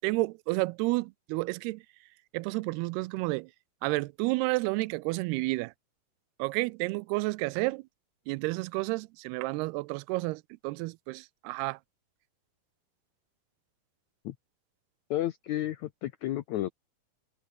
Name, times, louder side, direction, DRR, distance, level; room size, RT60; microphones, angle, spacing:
voice 1, 0.0-1.8 2.3-3.5 3.8-5.7 6.4-7.8 8.3-11.8, right 23 dB, 90° right, 2.6 m, -31 dB
voice 2, 15.1-16.7, left 13 dB, 80° left, 1.6 m, -32 dB
omnidirectional pair, 4.5 m